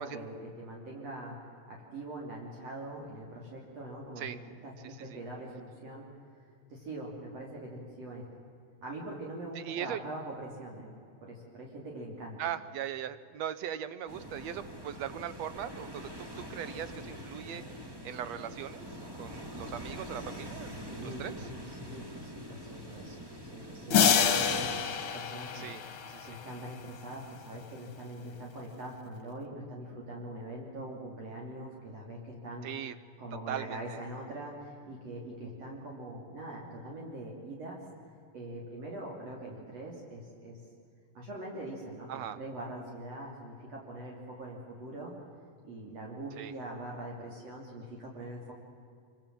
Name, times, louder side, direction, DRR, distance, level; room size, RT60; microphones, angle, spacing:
voice 1, 0.0-1.4 1.7-6.1 6.7-8.2 8.8-11.0 11.2-12.5 17.5-17.7 20.1-20.4 20.8-23.2 23.5-25.8 26.2-32.7 33.2-37.8 38.3-40.6 41.2-45.1 45.6-48.5, right 1 dB, 55° right, -2 dB, 3.9 m, -43 dB
voice 2, 4.8-5.2 9.5-10.0 12.4-20.8 21.0-21.5 25.5-26.4 32.6-32.9 33.5-34.0 42.1-42.4 46.4-46.5, right 10 dB, 70° right, 14 dB, 1.7 m, -40 dB
sound 1, 14.1-24.8, equal, 10° right, 1.4 m, -44 dB
sound 2, 23.9-26.7, left 7 dB, 50° left, 2.0 m, -27 dB
25.5 x 24.5 x 7.5 m, 2.4 s
omnidirectional pair, 3.6 m